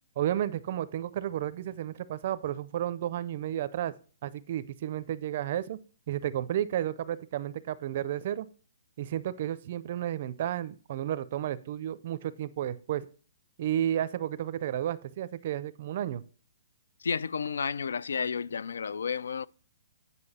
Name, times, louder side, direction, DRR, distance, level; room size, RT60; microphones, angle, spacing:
voice 1, 0.2-3.9 4.2-5.8 6.1-8.5 9.0-13.1 13.6-16.2, right 11 dB, 40° right, 0.4 m, -32 dB
voice 2, 17.0-19.5, left 6 dB, 90° left, 0.3 m, -31 dB
9.7 x 5.3 x 4.1 m
hypercardioid pair, 165°, 0 cm